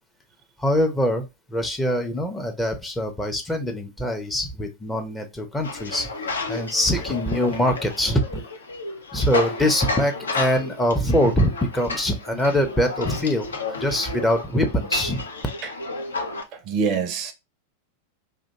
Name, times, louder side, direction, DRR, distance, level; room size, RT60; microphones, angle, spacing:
voice 1, 0.6-6.1 6.5-8.4 9.1-15.2, equal, 10° left, 0.5 m, -23 dB
sound 1, 5.6-16.4, left 3 dB, 70° left, 0.4 m, -31 dB
voice 2, 16.5-17.3, right 5 dB, 40° right, 0.4 m, -25 dB
2.4 x 2.1 x 2.8 m
figure-of-eight pair, 90°, 0 cm